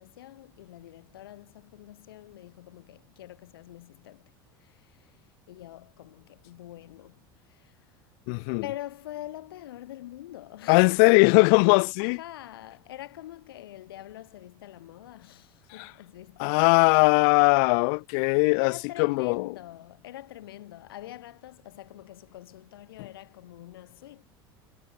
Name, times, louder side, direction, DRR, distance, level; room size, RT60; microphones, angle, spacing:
voice 1, 0.0-7.8 8.6-11.1 12.0-16.7 18.6-24.3, left 14 dB, 90° left, 5.8 m, -44 dB
voice 2, 8.3-8.6 10.7-12.2 16.4-18.7 19.0-19.5, left 39 dB, 70° left, 0.4 m, -20 dB
supercardioid pair, 95°, 12 cm